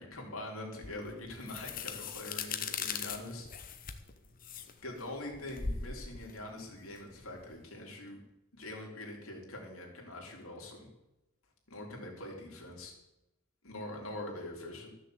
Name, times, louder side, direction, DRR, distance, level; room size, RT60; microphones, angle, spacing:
voice 1, 0.0-3.5 4.8-8.2 8.5-10.9 11.7-12.9 13.6-14.9, left 1 dB, 65° left, -1 dB, 3.5 m, -43 dB
sound 1, 0.8-7.6, left 6 dB, 40° left, 1.0 m, -40 dB
13.5 x 6.9 x 7.8 m, 0.93 s
head